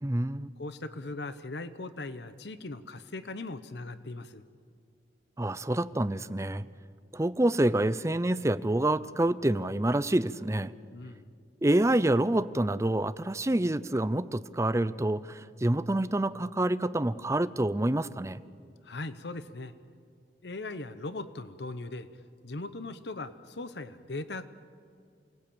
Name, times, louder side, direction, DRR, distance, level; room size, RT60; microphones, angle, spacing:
voice 1, 0.0-0.5 5.4-6.7 7.1-10.7 11.6-18.4, right 1 dB, 15° right, 14 dB, 0.6 m, -27 dB
voice 2, 0.6-4.4 10.9-11.2 18.8-19.7 20.4-22.1 22.4-24.5, left 2 dB, 70° left, 12 dB, 0.9 m, -39 dB
28.5 x 19.5 x 8.7 m, 2.2 s
head